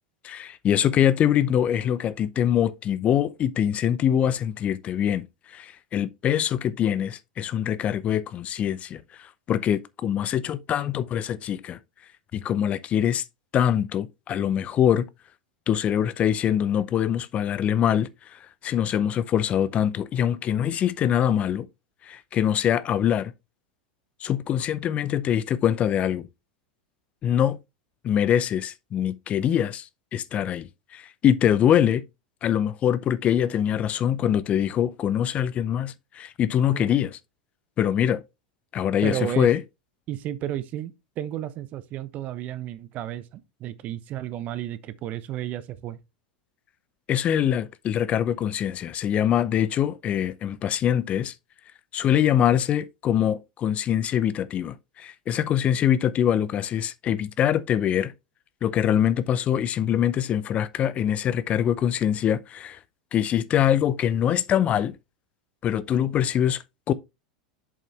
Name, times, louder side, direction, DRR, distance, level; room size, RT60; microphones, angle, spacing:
voice 1, 0.2-11.8 12.3-13.2 13.5-15.1 15.7-21.7 22.0-23.3 24.2-26.3 27.2-27.6 28.0-32.0 32.4-37.2 37.8-38.2 38.7-39.6 47.1-51.3 51.9-58.1 58.6-62.8 63.1-65.0 65.6-66.9, left 10 dB, 35° left, 0.6 m, -24 dB
voice 2, 39.0-39.5 40.1-46.0, right 12 dB, 40° right, 0.8 m, -32 dB
7.3 x 5.5 x 3.3 m
figure-of-eight pair, 90°, 4 cm